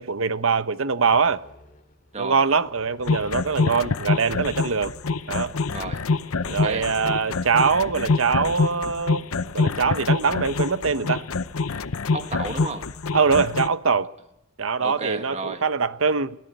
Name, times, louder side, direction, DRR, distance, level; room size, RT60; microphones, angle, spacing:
voice 1, 0.0-1.4 2.2-4.9 5.3-5.6 6.5-9.2 9.5-11.3 13.1-14.1 14.6-16.4, right 5 dB, 70° right, 1.0 m, -23 dB
sound 1, 1.1-9.6, left 1 dB, 40° left, 2.6 m, -51 dB
voice 2, 2.1-2.4 5.7-6.1 6.5-6.9 12.1-12.9 14.8-15.6, right 3 dB, 30° right, 1.9 m, -32 dB
sound 2, 3.1-13.7, left 4 dB, 90° left, 0.8 m, -26 dB
23.5 x 17.0 x 9.3 m
head